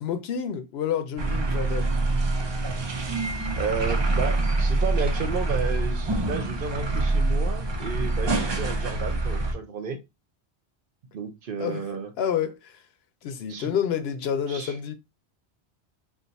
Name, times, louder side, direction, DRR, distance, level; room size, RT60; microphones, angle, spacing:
voice 1, 0.0-1.9 11.6-11.9 12.2-12.8 13.2-14.9, left 8 dB, 70° left, 0.8 m, -29 dB
sound 1, 1.2-9.5, right 2 dB, 40° right, 0.4 m, -25 dB
voice 2, 3.6-10.0 11.1-12.1 13.5-13.7 14.5-14.8, right 5 dB, 60° right, 0.8 m, -32 dB
2.5 x 2.3 x 3.9 m
omnidirectional pair, 1.1 m